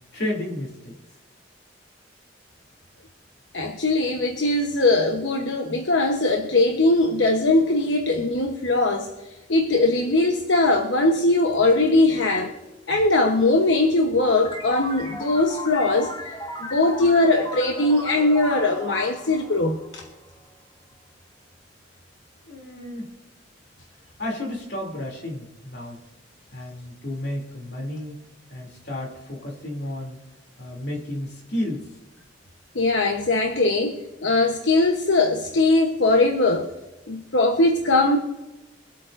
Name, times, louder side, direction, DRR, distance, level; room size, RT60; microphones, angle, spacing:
voice 1, 0.1-0.9 22.5-23.1 24.2-26.0 26.5-28.2 28.5-30.2 30.6-31.9, left 1 dB, 65° left, 0 dB, 3.0 m, -32 dB
voice 2, 3.5-9.1 9.5-12.5 12.9-16.1 16.7-20.0 32.7-36.7 37.1-38.2, left 2 dB, 85° left, 3 dB, 1.1 m, -20 dB
sound 1, 14.2-20.5, left 1 dB, 25° left, 1.2 m, -36 dB
24.5 x 8.4 x 2.6 m, 1.1 s
head